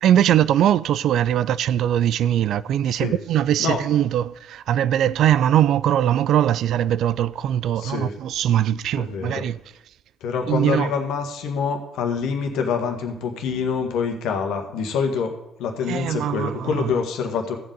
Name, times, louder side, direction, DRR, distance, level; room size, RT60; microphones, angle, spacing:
voice 1, 0.0-9.6 10.5-10.9 15.9-16.9, right 11 dB, 60° right, 0.3 m, -21 dB
voice 2, 2.9-3.8 7.8-8.1 8.9-9.5 10.2-17.6, left 5 dB, 65° left, 1.7 m, -26 dB
14.5 x 7.6 x 5.2 m
hypercardioid pair, 50°, 0 cm